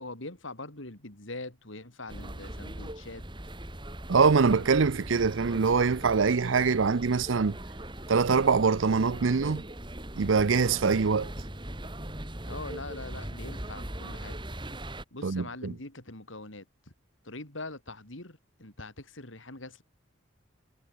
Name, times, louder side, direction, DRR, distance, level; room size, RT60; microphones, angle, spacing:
voice 1, 0.0-3.2 12.4-14.4 15.1-16.7 17.2-19.8, left 2 dB, 80° left, 4.4 m, -42 dB
sound 1, 2.1-15.0, right 1 dB, 25° right, 3.6 m, -40 dB
voice 2, 4.1-7.6 8.1-9.6 10.2-11.3 15.2-15.7, right 5 dB, 80° right, 0.6 m, -24 dB
head